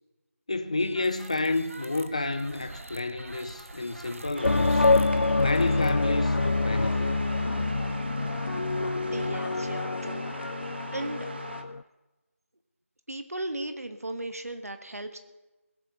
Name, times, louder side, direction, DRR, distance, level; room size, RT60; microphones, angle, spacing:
voice 1, 0.5-4.8 5.4-7.1, left 2 dB, 25° left, 0.6 m, -30 dB
sound 1, 0.7-6.7, right 2 dB, 65° right, 1.4 m, -46 dB
sound 2, 4.4-11.8, left 3 dB, 70° left, 0.4 m, -26 dB
sound 3, 4.4-11.6, right 2 dB, 45° right, 1.5 m, -40 dB
voice 2, 9.1-10.6 10.9-11.3 13.1-15.2, right 1 dB, 85° right, 1.5 m, -36 dB
21.0 x 7.7 x 6.6 m
figure-of-eight pair, 175°, 8 cm